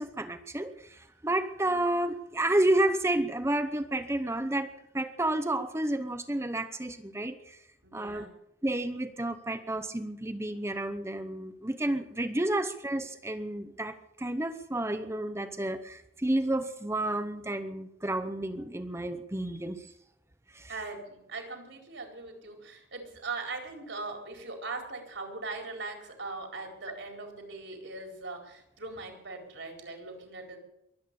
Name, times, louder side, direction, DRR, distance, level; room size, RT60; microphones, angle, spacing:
voice 1, 0.0-4.7 4.9-7.6 7.9-8.3 8.6-19.9 20.5-20.7, right 1 dB, 15° right, 9 dB, 0.8 m, -31 dB
voice 2, 7.8-8.3 20.7-30.6, right 3 dB, 65° right, 2 dB, 4.3 m, -40 dB
23.0 x 9.1 x 6.9 m, 0.78 s
head